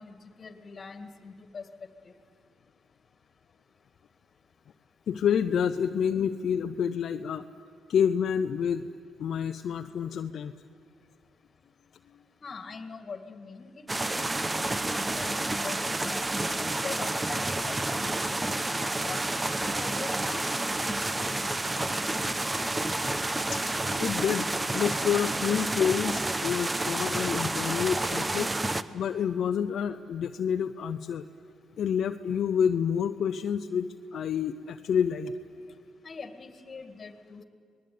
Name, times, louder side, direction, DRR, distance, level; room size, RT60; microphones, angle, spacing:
voice 1, 0.0-1.7 2.0-2.1 12.4-13.8 14.1-16.2 16.7-19.3 19.6-22.0 36.0-37.4, left 4 dB, 40° left, 9 dB, 2.2 m, -43 dB
voice 2, 5.1-7.4 7.9-8.8 9.2-10.5 23.5-23.6 24.0-24.5 24.7-28.5 28.9-31.2 31.8-35.4, left 7 dB, 65° left, 7 dB, 0.7 m, -28 dB
sound 1, 13.9-28.8, right 2 dB, 20° right, 0.9 m, -30 dB
26.0 x 20.0 x 9.5 m, 2.4 s
cardioid pair, 90°, 0 cm